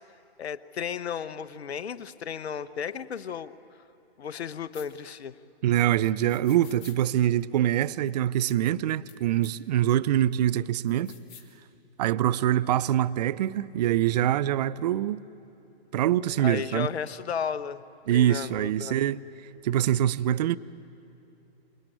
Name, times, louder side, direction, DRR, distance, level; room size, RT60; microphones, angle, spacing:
voice 1, 0.4-3.5 4.2-5.4 16.4-17.8 18.1-19.0, left 7 dB, 75° left, 1.0 m, -34 dB
sound 1, 4.7-4.9 6.3-7.0 8.5-8.6 9.1-9.2 9.4-9.5 10.9-11.5, left 7 dB, 40° left, 3.3 m, -49 dB
voice 2, 5.6-11.1 12.0-15.2 15.9-16.9 18.1-19.2 19.6-20.6, right 12 dB, 40° right, 0.5 m, -24 dB
27.0 x 19.5 x 9.0 m
hypercardioid pair, 135°, 32 cm